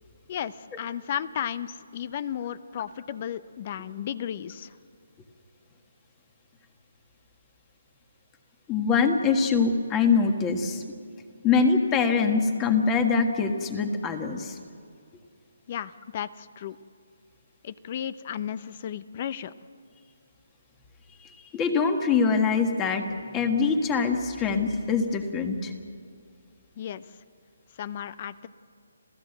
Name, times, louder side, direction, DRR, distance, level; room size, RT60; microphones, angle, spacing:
voice 1, 0.3-4.7 15.7-16.8 17.6-19.5 26.8-27.0 27.8-28.5, left 9 dB, 35° left, 17 dB, 0.7 m, -34 dB
voice 2, 8.7-10.8 11.4-14.6 21.2-23.1 23.3-25.7, left 5 dB, 15° left, 7 dB, 1.6 m, -24 dB
30.0 x 14.5 x 8.0 m, 2.3 s
hypercardioid pair, 165°, 0 cm